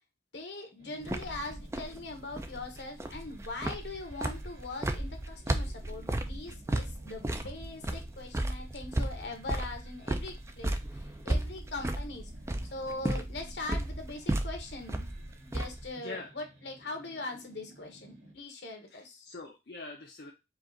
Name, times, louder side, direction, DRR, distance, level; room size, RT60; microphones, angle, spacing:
voice 1, 0.3-12.3 12.7-15.1 15.4-19.3, left 2 dB, 80° left, 4 dB, 1.3 m, -41 dB
sound 1, 0.8-18.3, right 1 dB, 70° right, 1.7 m, -56 dB
sound 2, 1.0-15.9, right 1 dB, 15° right, 0.4 m, -34 dB
voice 2, 16.0-16.3 18.9-20.3, left 3 dB, 60° left, 0 dB, 0.6 m, -43 dB
4.8 x 2.5 x 3.8 m, 0.25 s
head